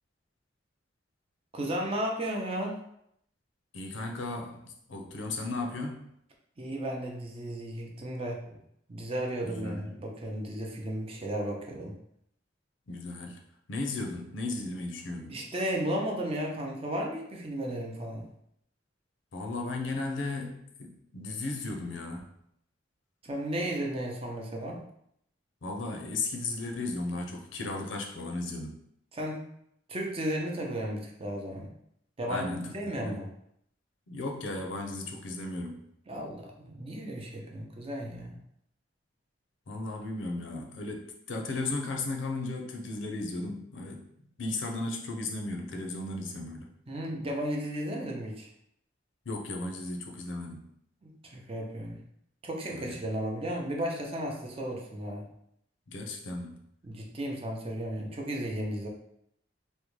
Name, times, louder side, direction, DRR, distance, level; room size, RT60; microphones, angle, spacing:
voice 1, 1.5-2.8 6.6-8.6 8.9-11.9 15.3-18.3 23.2-24.8 29.1-29.4 29.9-31.7 32.2-33.3 36.1-38.4 46.9-48.5 51.0-52.0 52.4-55.3 56.8-58.9, right 1 dB, 30° right, 0 dB, 0.6 m, -34 dB
voice 2, 3.7-6.1 9.4-9.9 12.9-13.4 13.7-15.4 19.3-22.3 25.6-28.8 32.3-33.2 34.1-35.9 39.7-44.0 44.4-46.7 49.3-50.6 52.7-53.0 55.9-56.6, left 2 dB, 80° left, 2 dB, 0.6 m, -35 dB
3.6 x 2.2 x 3.1 m, 0.72 s
head